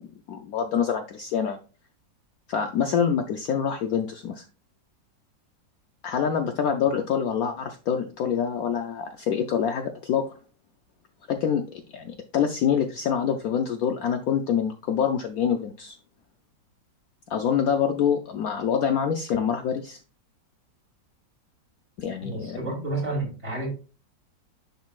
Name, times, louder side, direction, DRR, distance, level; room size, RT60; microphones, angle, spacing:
voice 1, 0.3-1.6 2.5-4.5 6.0-10.2 11.3-16.0 17.3-20.0 22.0-22.6, left 7 dB, 70° left, 0.9 m, -26 dB
voice 2, 22.2-23.7, right 2 dB, 40° right, 3.3 m, -30 dB
10.5 x 4.0 x 2.4 m
omnidirectional pair, 1.9 m